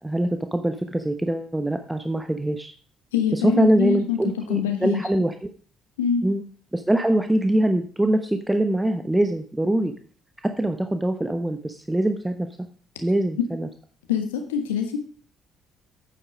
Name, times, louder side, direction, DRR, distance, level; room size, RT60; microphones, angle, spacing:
voice 1, 0.0-2.7 3.3-5.5 6.2-6.4 6.7-9.9 10.4-12.5 13.0-13.7, right 1 dB, 10° right, 7 dB, 1.0 m, -23 dB
voice 2, 3.1-4.2 4.5-5.0 6.0-6.2 14.1-15.0, left 7 dB, 75° left, 6 dB, 1.3 m, -24 dB
8.9 x 8.1 x 5.0 m, 0.42 s
figure-of-eight pair, 45°, 0 cm